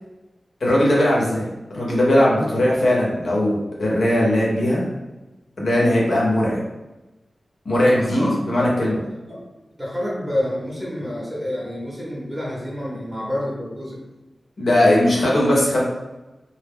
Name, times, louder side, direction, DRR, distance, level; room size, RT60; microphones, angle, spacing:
voice 1, 0.6-4.8 5.6-6.6 7.6-8.9 14.6-15.8, left 1 dB, 75° left, -5 dB, 0.9 m, -19 dB
voice 2, 7.8-9.4 9.8-14.0, left 1 dB, 5° right, -6 dB, 0.8 m, -28 dB
2.1 x 2.0 x 3.5 m, 1.0 s
wide cardioid pair, 65°, 0 cm